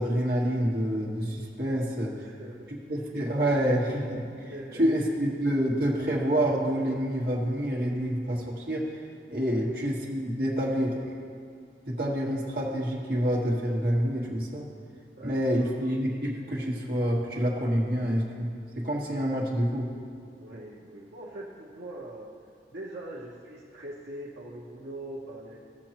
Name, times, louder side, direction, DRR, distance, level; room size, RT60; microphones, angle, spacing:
voice 1, 0.0-2.1 2.7-4.5 4.8-9.0 9.3-11.0 11.9-14.7 15.2-18.5 18.8-19.9, equal, 55° right, -3 dB, 1.5 m, -27 dB
voice 2, 1.7-2.7 4.5-5.1 9.5-9.7 15.2-15.8 20.4-22.3 22.7-25.6, right 1 dB, 75° right, -5 dB, 0.9 m, -42 dB
15.5 x 6.4 x 3.0 m, 2.2 s
head